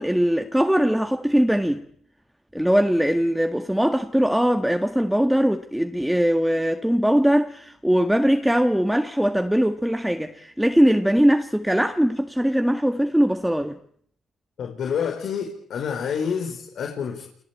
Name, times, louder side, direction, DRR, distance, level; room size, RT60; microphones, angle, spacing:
voice 1, 0.0-1.8 2.5-13.8, equal, 5° right, 1.8 m, -21 dB
voice 2, 14.6-17.2, left 7 dB, 65° left, 5.3 m, -28 dB
29.0 x 19.5 x 8.6 m
cardioid pair, 90°, 0 cm